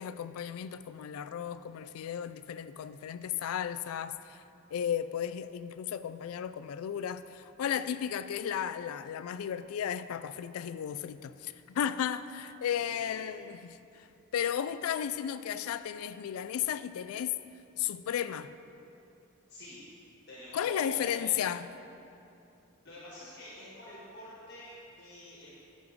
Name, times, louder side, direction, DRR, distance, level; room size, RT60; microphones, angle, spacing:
voice 1, 0.0-4.4 4.7-14.1 14.3-17.4 17.8-18.5 20.5-21.7, left 9 dB, 80° left, 0.3 m, -34 dB
voice 2, 12.9-13.3 19.5-19.8 20.3-21.3 22.8-25.5, equal, 50° left, 1.5 m, -46 dB
11.0 x 5.3 x 3.6 m
head